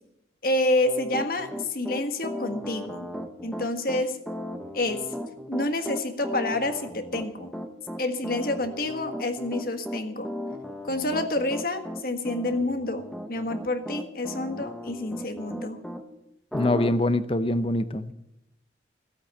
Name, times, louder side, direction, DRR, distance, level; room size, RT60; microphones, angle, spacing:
voice 1, 0.4-3.1 3.4-4.2 4.7-5.0 5.5-7.5 8.0-10.3 10.8-15.8, left 2 dB, 50° left, 7 dB, 1.5 m, -28 dB
Piano, 0.9-16.0 16.5-16.9, equal, ahead, 0.9 m, -36 dB
voice 2, 16.5-18.1, left 1 dB, 30° left, 13 dB, 0.7 m, -24 dB
15.5 x 8.4 x 8.4 m, 0.86 s
head